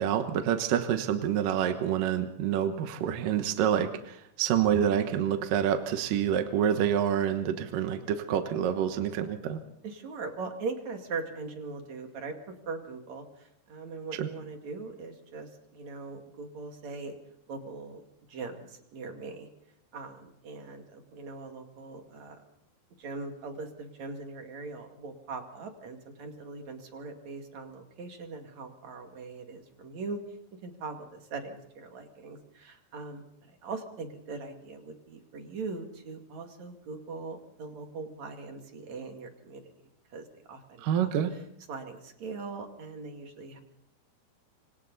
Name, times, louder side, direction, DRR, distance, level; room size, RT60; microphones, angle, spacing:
voice 1, 0.0-9.6 14.1-14.3 40.8-41.3, right 9 dB, 65° right, 7 dB, 2.5 m, -27 dB
voice 2, 9.8-12.3 12.7-17.1 17.5-18.0 18.3-19.5 19.9-22.4 23.0-30.2 30.6-39.7 40.1-41.1 41.7-43.6, right 4 dB, 50° right, 4 dB, 3.2 m, -41 dB
27.0 x 25.5 x 4.1 m, 0.75 s
omnidirectional pair, 4.7 m